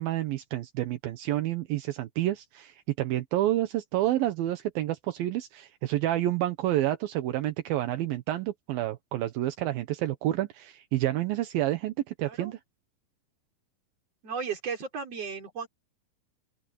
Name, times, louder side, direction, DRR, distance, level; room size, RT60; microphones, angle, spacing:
voice 1, 0.0-12.6, right 14 dB, 80° right, 2.9 m, -29 dB
voice 2, 14.2-15.7, right 6 dB, 45° right, 4.7 m, -35 dB
open air
omnidirectional pair, 4.2 m